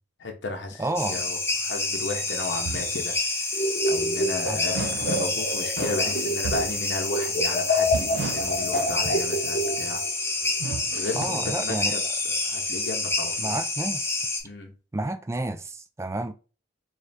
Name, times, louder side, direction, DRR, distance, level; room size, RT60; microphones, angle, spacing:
voice 1, 0.2-3.1 3.9-10.0 11.0-13.5 14.4-14.7, left 3 dB, 75° left, 0.7 m, -34 dB
voice 2, 0.8-1.2 4.5-4.6 11.2-11.9 13.4-14.0 14.9-16.3, right 2 dB, 15° right, 0.3 m, -30 dB
sound 1, 0.9-14.4, left 3 dB, 15° left, 0.7 m, -28 dB
bathtub big feet squeek dry surface, 2.4-3.0 3.9-4.1 4.7-5.4 5.8-6.8 7.9-9.3 10.4-11.2, right 4 dB, 90° right, 0.4 m, -34 dB
sound 2, 3.5-6.8 7.1-10.1, left 1 dB, 45° left, 0.9 m, -28 dB
3.2 x 2.4 x 4.0 m
head